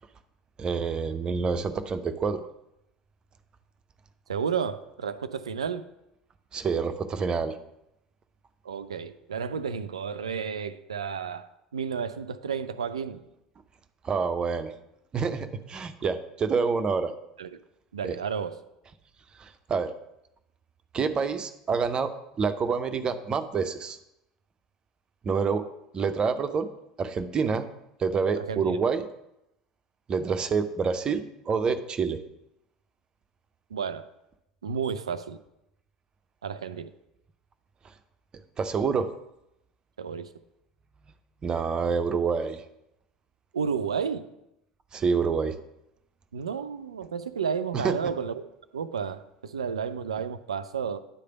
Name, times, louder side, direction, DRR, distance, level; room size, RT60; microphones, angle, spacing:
voice 1, 0.6-2.5 6.5-7.5 14.0-14.7 15.1-17.1 18.0-18.2 19.4-19.9 20.9-24.0 25.2-25.7 25.9-26.7 27.0-27.7 28.0-29.1 30.1-32.2 38.6-39.1 41.4-42.6 44.9-45.6 47.7-48.0, right 5 dB, 30° right, 10 dB, 0.6 m, -27 dB
voice 2, 4.3-5.8 8.6-13.2 17.4-17.5 17.9-18.6 28.4-28.8 33.7-34.1 34.6-35.4 36.4-36.9 40.0-40.3 43.5-44.3 46.3-48.4 48.7-51.0, right 6 dB, 75° right, 12 dB, 0.4 m, -32 dB
10.0 x 3.3 x 6.8 m, 0.86 s
figure-of-eight pair, 70°, 3 cm